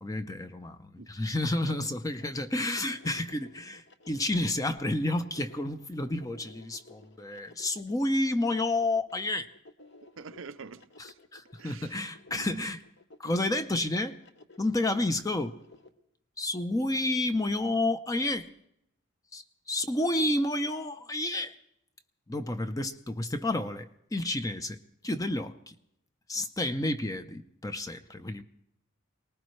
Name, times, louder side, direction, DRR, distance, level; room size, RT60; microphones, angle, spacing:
voice 1, 0.0-9.5 11.3-12.8 13.2-14.2 14.6-15.6 16.4-18.5 19.3-21.5 22.3-24.8 25.0-25.7 26.3-28.4, left 1 dB, 15° left, 0.6 m, -30 dB
sound 1, 2.2-15.9, left 2 dB, 55° left, 1.0 m, -56 dB
voice 2, 10.2-11.1 11.6-12.0 12.3-12.6, right 5 dB, 70° right, 0.6 m, -45 dB
23.5 x 19.0 x 3.2 m
head